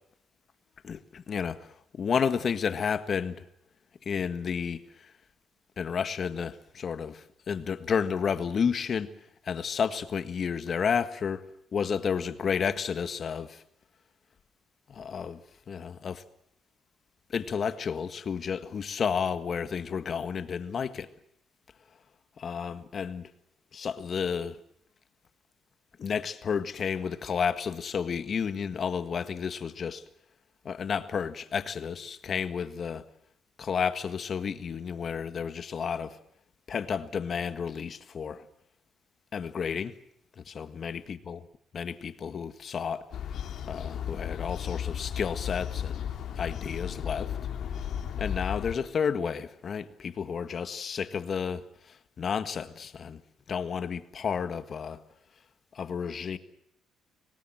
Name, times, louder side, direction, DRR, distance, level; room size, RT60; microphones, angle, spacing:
voice 1, 0.8-3.4 4.0-5.1 5.8-9.1 9.4-11.4 11.7-13.6 14.9-15.4 15.7-16.2 17.3-21.1 22.4-23.3 23.7-24.6 26.0-30.0 30.6-33.0 33.6-36.2 36.7-38.4 39.3-39.9 40.5-41.4 41.7-43.0 43.7-46.1 46.4-47.3 48.2-53.2 53.5-55.0 55.7-56.4, left 6 dB, 50° left, 1.6 m, -31 dB
sound 1, 43.1-48.7, left 9 dB, 70° left, 2.6 m, -34 dB
25.0 x 19.0 x 7.7 m
cardioid pair, 90°, 0 cm